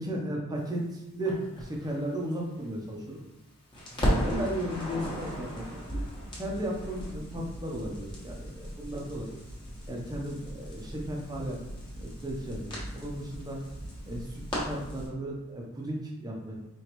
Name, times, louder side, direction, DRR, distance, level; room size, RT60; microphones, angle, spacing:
voice 1, 0.0-3.2 4.0-5.8 6.3-9.4 9.9-11.6 12.0-13.6 14.0-16.5, right 1 dB, 15° right, -1 dB, 0.8 m, -35 dB
Crackle, 1.3-3.4 3.7-15.1, equal, 20° left, 1.2 m, -36 dB
4.8 x 3.1 x 3.1 m, 0.96 s
head